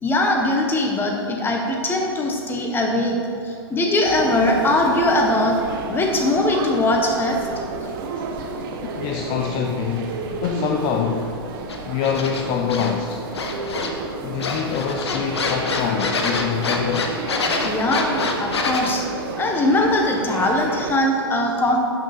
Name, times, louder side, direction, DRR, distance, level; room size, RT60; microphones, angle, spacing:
voice 1, 0.0-3.2 3.4-5.6 5.9-7.4 17.6-19.0 19.4-21.8, left 1 dB, 15° left, 1 dB, 1.2 m, -21 dB
sound 1, 4.0-21.0, right 4 dB, 55° right, 1.0 m, -32 dB
voice 2, 8.8-11.4 11.9-13.3 14.2-17.2, left 7 dB, 40° left, 4 dB, 0.5 m, -25 dB
sound 2, 11.7-12.9 13.3-14.1 14.4-18.9, left 3 dB, 85° left, 1.0 m, -26 dB
8.5 x 5.9 x 4.4 m, 2.4 s
hypercardioid pair, 120°, 14 cm